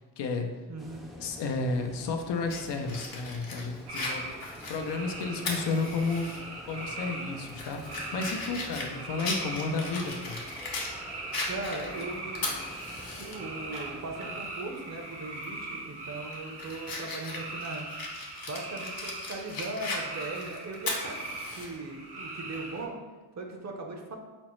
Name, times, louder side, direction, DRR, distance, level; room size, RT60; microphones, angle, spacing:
voice 1, 0.2-0.5 1.2-4.4 4.7-6.3 6.6-10.4, left 3 dB, 80° left, 4 dB, 0.6 m, -32 dB
voice 2, 0.7-1.1 11.5-12.7 13.2-17.9 18.5-22.9 23.3-24.2, right 2 dB, 40° right, 3 dB, 0.6 m, -39 dB
sound 1, 0.8-14.5, equal, ahead, 0.4 m, -48 dB
Fire, 2.5-6.4 6.8-6.9 7.4-10.9 11.3-13.4 13.8-13.9 15.4-15.6 16.1-21.7, left 3 dB, 60° left, 0.9 m, -38 dB
sound 2, 3.9-22.8, right 2 dB, 75° right, 0.9 m, -41 dB
5.1 x 2.0 x 3.0 m, 1.3 s
cardioid pair, 75°, 41 cm